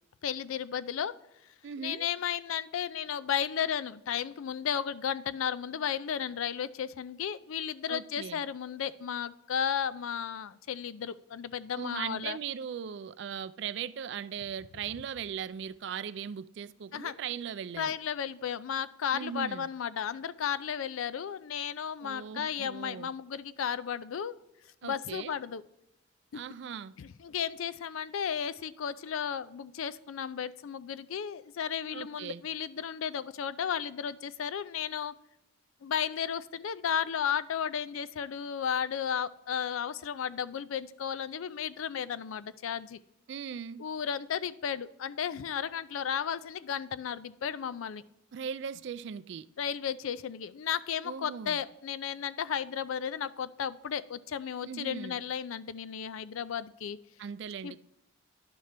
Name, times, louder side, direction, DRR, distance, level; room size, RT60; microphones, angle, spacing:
voice 1, 0.2-1.1 1.8-12.4 16.9-17.1 17.8-24.4 24.8-25.6 27.0-35.1 35.8-43.0 43.8-48.0 49.6-57.0 57.6-57.8, left 8 dB, 80° left, 16 dB, 0.4 m, -34 dB
voice 2, 1.6-2.1 7.9-8.4 11.8-17.9 19.1-19.7 22.0-23.1 24.8-25.4 26.3-26.9 31.9-32.5 43.3-43.8 48.3-49.5 51.0-51.6 54.6-55.2 57.2-57.8, right 7 dB, 55° right, 16 dB, 0.3 m, -39 dB
10.5 x 6.5 x 3.3 m, 0.83 s
head